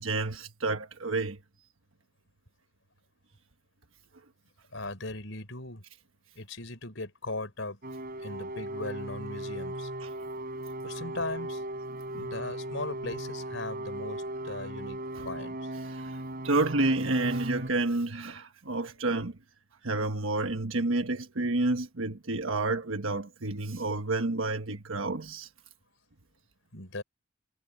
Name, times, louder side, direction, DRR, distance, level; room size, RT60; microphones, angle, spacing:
voice 1, 0.0-1.4 10.0-10.1 15.2-15.3 15.8-19.3 19.8-25.5, right 2 dB, 85° right, 1.3 m, -30 dB
voice 2, 4.7-5.8 6.4-7.8 8.2-9.9 10.8-11.6 12.1-15.7 26.7-27.0, left 2 dB, 70° left, 5.6 m, -38 dB
sound 1, 7.8-17.7, right 1 dB, 50° right, 6.3 m, -37 dB
head